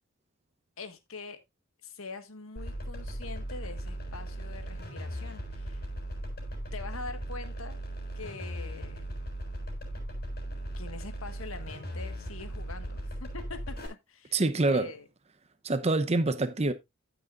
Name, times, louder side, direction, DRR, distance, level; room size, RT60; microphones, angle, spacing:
voice 1, 0.8-1.4 1.8-5.8 6.7-7.8 8.1-9.2 10.8-14.4 14.7-15.1, left 3 dB, 75° left, 1.6 m, -44 dB
sound 1, 2.6-13.9, right 1 dB, 45° left, 6.9 m, -38 dB
voice 2, 14.3-14.9 15.6-16.7, right 2 dB, 30° right, 0.8 m, -26 dB
15.5 x 6.3 x 2.5 m
head